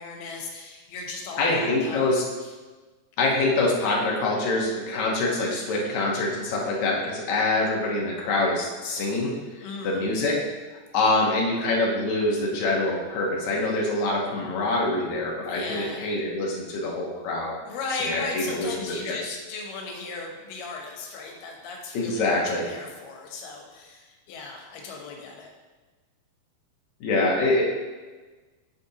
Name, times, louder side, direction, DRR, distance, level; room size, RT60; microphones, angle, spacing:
voice 1, 0.0-2.1 2.4-2.5 9.6-10.1 15.4-16.1 17.6-25.5, left 3 dB, 90° left, 1 dB, 3.0 m, -36 dB
voice 2, 1.4-2.2 3.2-9.3 9.8-10.4 10.9-17.5 18.1-18.7 19.0-19.1 21.9-22.6 27.0-27.6, left 2 dB, 65° left, -2 dB, 2.1 m, -25 dB
9.4 x 5.1 x 2.9 m, 1.3 s
omnidirectional pair, 4.4 m